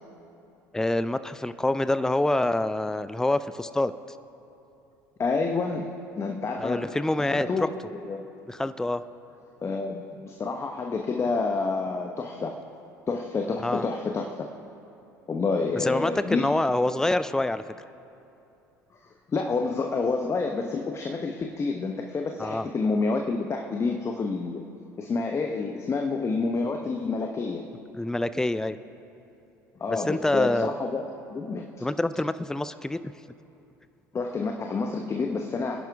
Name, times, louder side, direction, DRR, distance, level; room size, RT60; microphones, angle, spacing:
voice 1, 0.7-3.9 6.6-7.7 8.5-9.0 13.6-13.8 15.8-17.6 22.4-22.7 27.9-28.8 29.9-30.7 31.8-33.0, left 2 dB, 5° left, 13 dB, 0.5 m, -26 dB
voice 2, 5.2-6.8 7.2-7.7 8.0-8.2 9.6-12.6 13.1-14.5 15.3-16.5 19.3-24.6 25.0-27.7 29.8-31.9 34.1-35.9, left 4 dB, 30° left, 3 dB, 1.0 m, -28 dB
27.0 x 10.5 x 3.5 m, 2.8 s
figure-of-eight pair, 65°, 10 cm